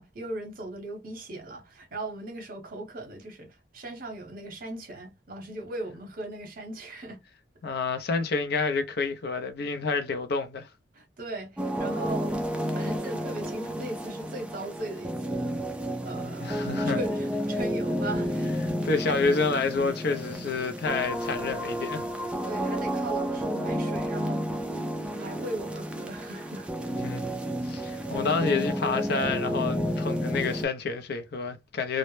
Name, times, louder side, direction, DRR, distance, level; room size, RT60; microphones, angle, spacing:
voice 1, 0.0-7.2 10.9-12.4 12.7-15.6 16.0-18.5 19.1-19.2 22.4-24.5 25.1-26.7, right 2 dB, 50° right, 0.8 m, -38 dB
voice 2, 7.6-10.7 16.3-17.0 18.8-22.0 27.0-27.2 27.6-32.0, left 4 dB, 60° left, 0.5 m, -28 dB
sound 1, 11.6-30.7, equal, 5° right, 0.3 m, -31 dB
2.0 x 2.0 x 3.0 m
head